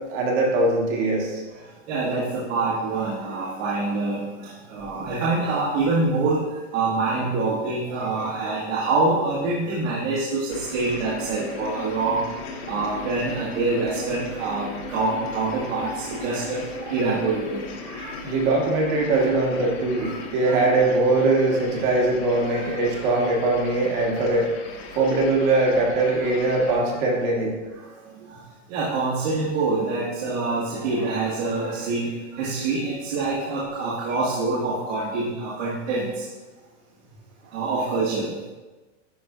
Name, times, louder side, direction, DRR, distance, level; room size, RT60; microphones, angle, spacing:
voice 1, 0.1-1.4 18.2-24.5 24.9-27.5, right 2 dB, 40° right, -1 dB, 1.5 m, -21 dB
voice 2, 1.9-6.4 6.7-12.2 12.7-18.1 20.0-20.2 20.4-20.6 22.5-22.7 26.4-26.5 28.3-28.4 28.7-36.2 37.5-38.3, right 3 dB, 70° right, -8 dB, 2.0 m, -26 dB
sound 1, 10.5-26.7, left 4 dB, 55° left, 1.4 m, -37 dB
11.0 x 4.3 x 2.5 m, 1.2 s
supercardioid pair, 165°, 37 cm